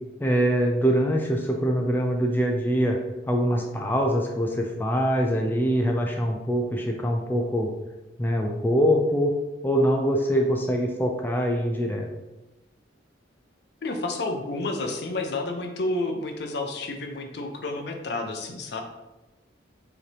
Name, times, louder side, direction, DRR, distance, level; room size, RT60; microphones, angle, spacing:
voice 1, 0.2-3.0 3.3-7.7 8.2-9.3 9.6-12.1, equal, 10° left, 1 dB, 0.3 m, -23 dB
voice 2, 13.8-18.8, left 2 dB, 60° left, 3 dB, 0.6 m, -30 dB
4.9 x 2.9 x 3.3 m, 1.0 s
head